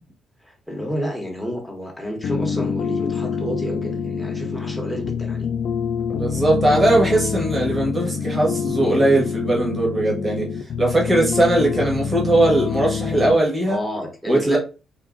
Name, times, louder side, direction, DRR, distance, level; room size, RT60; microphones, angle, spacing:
voice 1, 0.4-5.5 13.6-14.6, equal, ahead, 1.2 m, -30 dB
sound 1, 2.2-13.4, left 7 dB, 70° left, 0.3 m, -26 dB
voice 2, 6.1-10.5 10.8-13.8 14.3-14.6, right 2 dB, 25° right, 1.5 m, -19 dB
3.6 x 2.6 x 2.6 m
cardioid pair, 90°, 0 cm